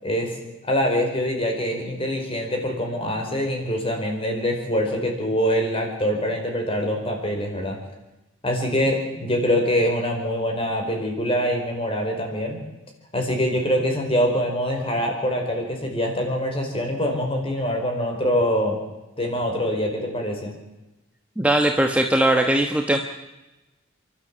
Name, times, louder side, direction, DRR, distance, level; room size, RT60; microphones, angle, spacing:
voice 1, 0.0-7.8 8.4-12.6 13.1-18.8 19.2-20.5, equal, 30° left, 2 dB, 4.7 m, -24 dB
voice 2, 21.4-23.0, right 1 dB, 5° right, 3 dB, 1.2 m, -19 dB
29.0 x 12.5 x 7.5 m, 1.0 s
head